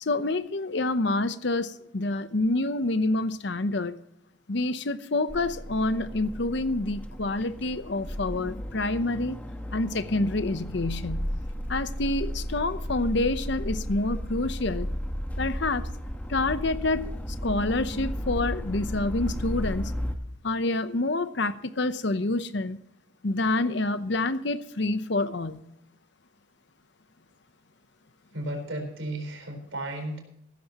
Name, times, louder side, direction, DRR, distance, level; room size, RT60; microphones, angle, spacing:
voice 1, 0.0-4.0 4.5-9.4 9.7-11.3 11.7-14.9 15.4-15.9 16.3-17.1 17.4-19.9 20.4-22.8 23.2-25.6, left 2 dB, 55° left, 0.8 m, -27 dB
sound 1, 5.3-20.1, equal, 10° left, 1.2 m, -34 dB
voice 2, 28.3-30.2, right 1 dB, 70° right, 4.3 m, -34 dB
15.5 x 14.5 x 3.0 m
head